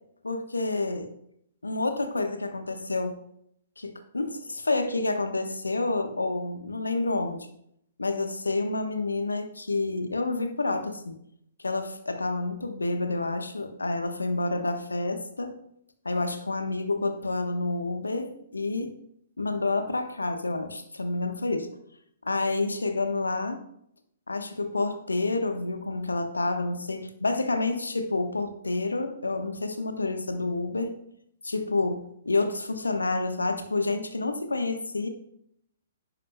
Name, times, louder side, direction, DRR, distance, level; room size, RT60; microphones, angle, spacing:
voice 1, 0.2-1.1 1.6-3.2 3.8-7.5 8.0-11.2 11.6-15.6 16.0-18.9 19.4-21.7 22.2-23.6 24.3-30.9 31.4-35.1, left 3 dB, 85° left, 7 dB, 1.0 m, -29 dB
10.5 x 9.9 x 2.2 m, 0.71 s
figure-of-eight pair, 120°, 0 cm